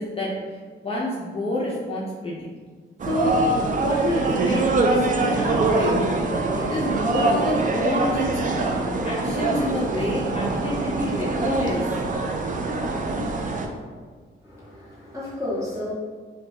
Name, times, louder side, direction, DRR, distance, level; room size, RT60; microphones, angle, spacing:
voice 1, 0.0-2.5 3.1-3.5 3.8-11.9, left 1 dB, 30° left, -5 dB, 0.6 m, -28 dB
sound 1, 3.0-13.7, right 2 dB, 40° right, 0.5 m, -24 dB
voice 2, 14.4-15.9, left 1 dB, 15° right, -8 dB, 1.4 m, -32 dB
5.2 x 2.3 x 2.8 m, 1.5 s
cardioid pair, 105°, 20 cm